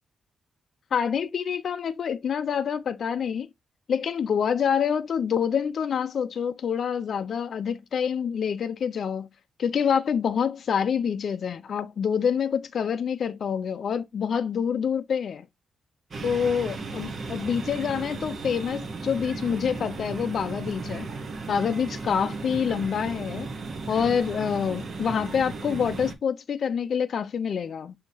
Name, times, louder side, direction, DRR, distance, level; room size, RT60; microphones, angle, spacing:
voice 1, 0.9-3.5 3.9-9.3 9.6-15.5 16.2-21.1 21.5-23.5 23.9-27.9, left 7 dB, 50° left, 0.4 m, -27 dB
sound 1, 16.1-26.1, right 3 dB, 40° right, 0.8 m, -35 dB
6.0 x 2.8 x 2.6 m
wide cardioid pair, 145°, 0 cm